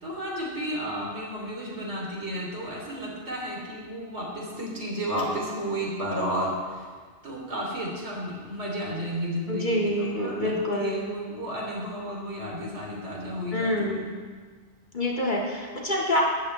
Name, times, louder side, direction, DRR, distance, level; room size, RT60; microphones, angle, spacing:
voice 1, 0.0-6.8 7.2-14.1, equal, 70° right, -3 dB, 3.7 m, -32 dB
voice 2, 9.5-11.1 13.5-14.2 14.9-16.2, left 1 dB, 45° left, -3 dB, 2.3 m, -27 dB
17.0 x 13.0 x 3.4 m, 1.6 s
omnidirectional pair, 1.2 m